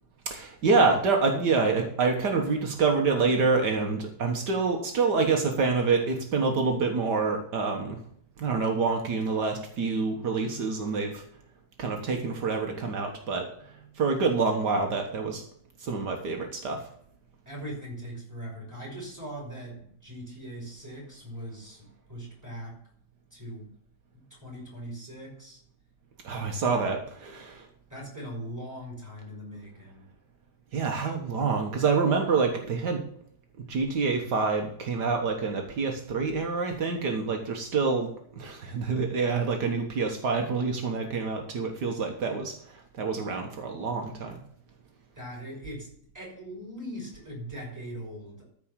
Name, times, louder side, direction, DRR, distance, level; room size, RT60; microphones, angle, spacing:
voice 1, 0.3-8.0 8.4-11.2 11.8-15.4 15.8-16.8 26.2-27.7 30.7-33.0 33.7-38.1 38.3-44.4, right 4 dB, 75° right, 3 dB, 1.9 m, -27 dB
voice 2, 17.5-22.8 23.3-23.7 24.1-25.6 26.6-26.7 27.9-30.1 45.2-48.5, equal, 10° right, -2 dB, 5.9 m, -40 dB
14.0 x 4.9 x 7.2 m, 0.66 s
omnidirectional pair, 1.8 m